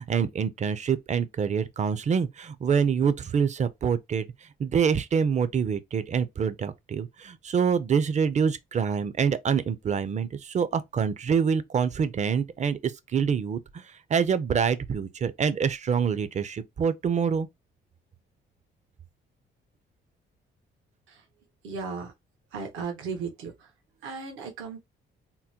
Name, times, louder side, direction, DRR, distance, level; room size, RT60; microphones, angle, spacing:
voice 1, 0.0-4.3 4.6-17.5, right 6 dB, 35° right, 0.5 m, -26 dB
voice 2, 21.6-22.1 22.5-23.7 24.0-24.8, right 5 dB, 80° right, 1.1 m, -36 dB
3.7 x 2.1 x 2.8 m
cardioid pair, 90°, 20 cm